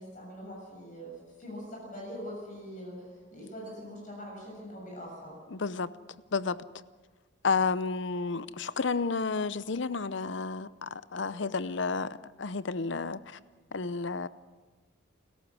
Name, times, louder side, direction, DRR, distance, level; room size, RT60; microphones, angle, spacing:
voice 1, 0.0-5.4, equal, 40° left, -2 dB, 7.2 m, -43 dB
voice 2, 5.5-5.9 6.3-6.6 7.4-13.4 13.7-14.3, left 4 dB, 65° left, 16 dB, 0.7 m, -31 dB
29.0 x 14.5 x 6.2 m, 1.4 s
head